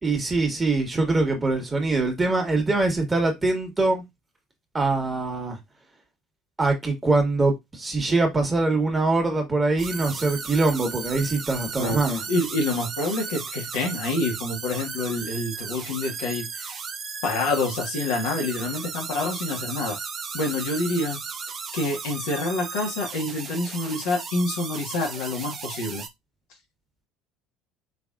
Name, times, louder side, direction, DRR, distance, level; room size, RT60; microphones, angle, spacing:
voice 1, 0.0-4.0 4.7-5.6 6.6-12.2, right 3 dB, 20° right, 1.8 m, -23 dB
sound 1, 9.8-26.1, right 5 dB, 35° right, 0.7 m, -35 dB
voice 2, 12.3-16.8 17.2-20.0 20.3-21.2 21.7-26.0, left 2 dB, 60° left, 1.6 m, -27 dB
4.9 x 3.4 x 2.5 m
figure-of-eight pair, 60°, 0 cm